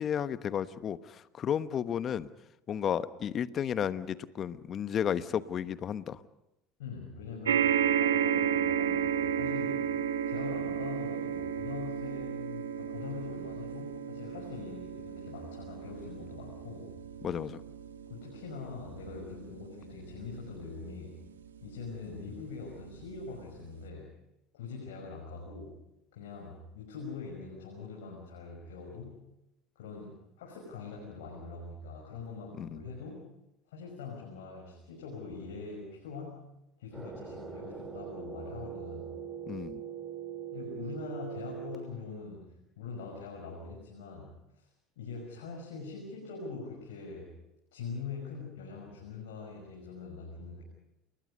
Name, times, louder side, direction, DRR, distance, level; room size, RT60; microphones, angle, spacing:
voice 1, 0.0-2.3 2.7-6.2 17.2-17.6 32.6-32.8 39.5-39.8, left 8 dB, 45° left, 13 dB, 1.1 m, -33 dB
voice 2, 6.8-9.9 10.3-16.9 18.1-21.2 21.6-24.1 24.5-25.7 26.1-29.2 29.8-33.2 33.7-36.5 36.8-39.1 40.5-44.7 45.0-47.3 47.7-50.6, left 4 dB, 75° left, -1 dB, 5.8 m, -43 dB
sound 1, 7.4-22.0 22.8-22.9 23.1-23.2, right 8 dB, 90° right, 1.5 m, -33 dB
sound 2, 36.9-41.8, right 8 dB, 15° right, 6.0 m, -41 dB
29.5 x 20.5 x 5.5 m, 0.89 s
hypercardioid pair, 75°, 0 cm